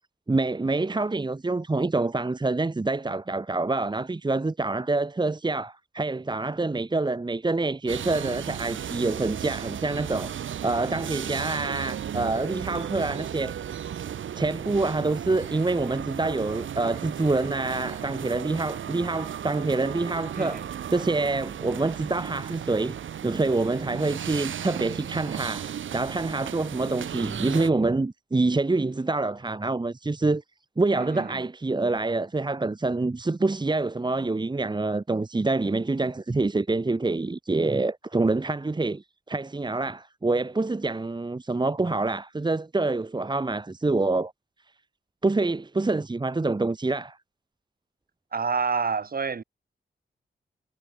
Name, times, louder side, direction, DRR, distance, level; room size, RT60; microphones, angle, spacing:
voice 1, 0.3-10.3 10.6-13.6 14.3-20.6 20.9-23.0 23.2-30.4 30.8-44.3 45.2-47.2, right 3 dB, 20° right, 1.6 m, -26 dB
sound 1, 7.9-27.7, right 9 dB, 85° right, 1.9 m, -35 dB
voice 2, 20.3-20.7 30.9-31.4 48.3-49.4, right 5 dB, 50° right, 6.6 m, -28 dB
cardioid pair, 90°, 20 cm